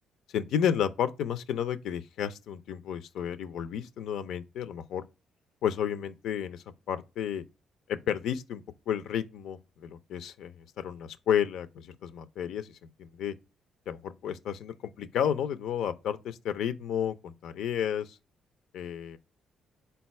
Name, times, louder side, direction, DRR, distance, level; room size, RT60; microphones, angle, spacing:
voice 1, 0.3-5.0 5.6-7.4 7.9-13.4 13.9-18.2 18.7-19.2, left 9 dB, 80° left, 0.4 m, -32 dB
3.9 x 2.3 x 4.1 m
cardioid pair, 90°, 0 cm